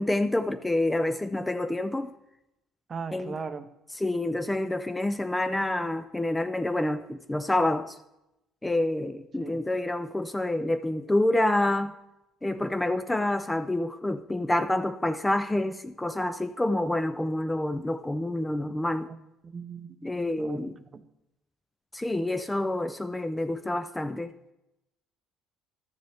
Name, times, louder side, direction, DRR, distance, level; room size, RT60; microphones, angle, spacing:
voice 1, 0.0-2.1 3.1-3.4 4.0-8.0 8.6-11.9 12.4-19.1 20.0-20.7 21.9-24.3, left 1 dB, 10° left, 11 dB, 0.3 m, -28 dB
voice 2, 2.9-3.7 9.4-9.6 19.1-19.2 19.4-20.1 20.4-21.0, right 5 dB, 30° right, 10 dB, 0.6 m, -38 dB
12.5 x 6.8 x 3.3 m, 0.89 s
cardioid pair, 115°, 0 cm